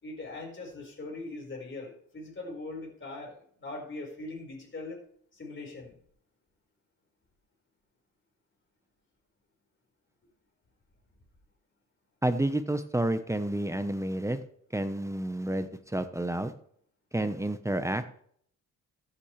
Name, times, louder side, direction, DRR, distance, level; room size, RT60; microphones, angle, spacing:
voice 1, 0.0-5.0 5.3-6.0, left 2 dB, 35° left, 0 dB, 4.9 m, -41 dB
voice 2, 12.2-14.4 14.7-16.5 17.1-18.0, right 1 dB, 10° right, 10 dB, 0.9 m, -30 dB
14.5 x 8.7 x 3.3 m, 0.62 s
cardioid pair, 85°, 33 cm